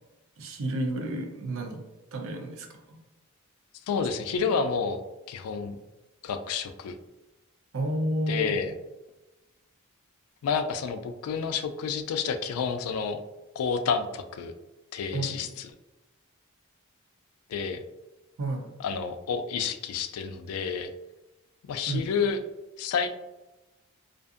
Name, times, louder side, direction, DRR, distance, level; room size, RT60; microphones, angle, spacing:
voice 1, 0.4-1.8 2.1-3.0 7.7-8.6 15.1-15.5 18.4-18.7 21.9-22.0, right 1 dB, 65° right, 3 dB, 0.5 m, -31 dB
voice 2, 3.9-5.0 5.3-5.8 6.2-6.9 8.3-8.7 10.4-13.2 13.6-14.5 14.9-15.7 17.5-17.8 18.8-20.9 21.6-22.4 22.8-23.1, left 5 dB, 80° left, 12 dB, 0.3 m, -29 dB
2.5 x 2.5 x 2.4 m, 1.1 s
head